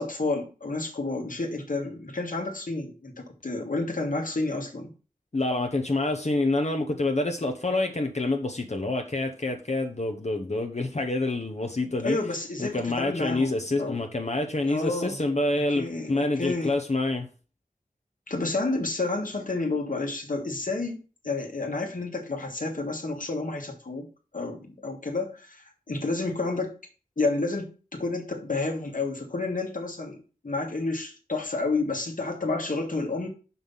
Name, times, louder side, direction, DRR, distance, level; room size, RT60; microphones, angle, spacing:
voice 1, 0.0-4.9 11.8-14.0 14.7-15.2 15.8-16.7 18.3-21.0 21.2-24.1 24.3-26.7 27.2-33.3, left 3 dB, 70° left, 1.8 m, -30 dB
voice 2, 5.3-12.2 12.6-17.3, left 2 dB, 50° left, 1.1 m, -27 dB
5.7 x 5.6 x 5.7 m
wide cardioid pair, 45°, 14 cm